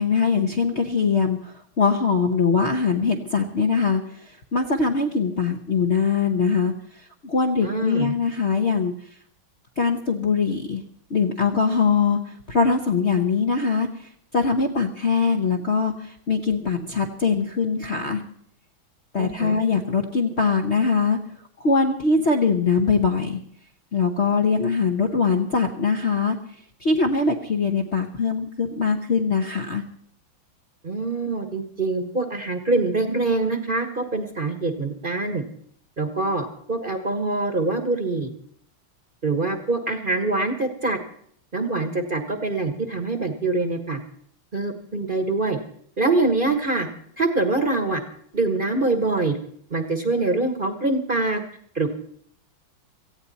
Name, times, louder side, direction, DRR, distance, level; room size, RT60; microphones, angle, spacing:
voice 1, 0.0-6.7 7.2-8.9 9.8-10.8 11.1-18.2 19.1-21.2 21.6-23.4 23.9-26.4 26.8-29.8, left 5 dB, 45° left, 3 dB, 1.0 m, -22 dB
voice 2, 7.6-8.1 19.2-19.6 30.8-35.4 36.0-38.3 39.2-41.0 41.5-44.0 44.5-45.6 46.0-46.9 47.2-48.0 48.3-49.4 49.7-51.4 51.7-51.9, right 3 dB, 30° right, 6 dB, 1.2 m, -24 dB
18.0 x 15.0 x 4.1 m, 0.62 s
omnidirectional pair, 2.3 m